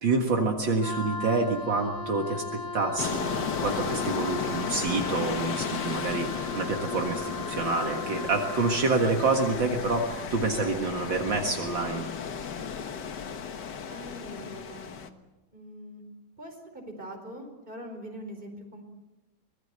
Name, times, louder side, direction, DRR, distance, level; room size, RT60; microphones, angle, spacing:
voice 1, 0.0-12.1, right 3 dB, 65° right, 2 dB, 2.5 m, -27 dB
Wind instrument woodwind instrument, 0.8-8.9, left 3 dB, 30° left, 0.7 m, -38 dB
sound 1, 3.0-15.1, left 6 dB, 55° left, 1.9 m, -34 dB
voice 2, 13.9-15.0 15.5-16.0 16.4-18.8, equal, 25° right, 3 dB, 4.7 m, -43 dB
25.0 x 20.0 x 8.1 m, 1.1 s
omnidirectional pair, 2.3 m